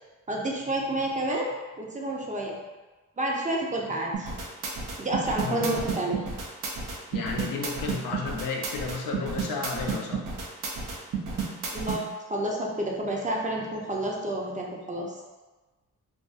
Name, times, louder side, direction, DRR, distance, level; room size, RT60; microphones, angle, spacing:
voice 1, 0.3-2.6 3.2-4.3 5.0-6.4 11.7-15.2, right 1 dB, 25° right, -1 dB, 0.5 m, -30 dB
sound 1, 4.1-12.0, right 5 dB, 70° right, 0.6 m, -31 dB
voice 2, 5.4-5.8 6.9-10.2, left 4 dB, 80° left, 0 dB, 0.5 m, -32 dB
2.4 x 2.3 x 2.5 m, 1.2 s
cardioid pair, 65°, 32 cm